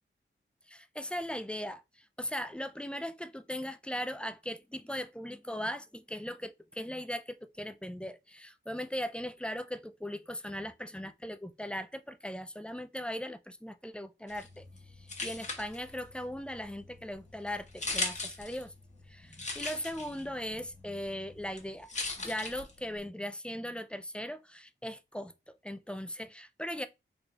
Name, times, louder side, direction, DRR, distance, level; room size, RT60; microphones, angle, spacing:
voice 1, 0.7-14.6 15.0-18.7 19.1-21.9 22.2-25.3 25.6-26.9, equal, 5° left, 0.3 m, -39 dB
sound 1, 14.3-23.1, left 3 dB, 35° left, 1.0 m, -41 dB
3.3 x 2.3 x 3.8 m
wide cardioid pair, 70°, 21 cm